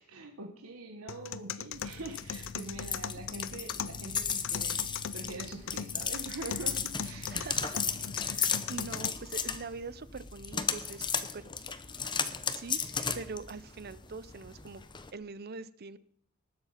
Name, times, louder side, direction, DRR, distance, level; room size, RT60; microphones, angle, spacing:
voice 1, 0.1-7.5, right 2 dB, 80° right, 4 dB, 1.3 m, -44 dB
sound 1, 1.1-9.1, left 8 dB, 65° left, 0.5 m, -40 dB
sound 2, 1.7-15.1, left 6 dB, 20° left, 0.8 m, -35 dB
voice 2, 7.3-7.8 8.2-11.5 12.0-14.8 15.1-16.0, right 4 dB, 50° right, 16 dB, 0.7 m, -43 dB
19.5 x 7.3 x 5.7 m, 0.65 s
head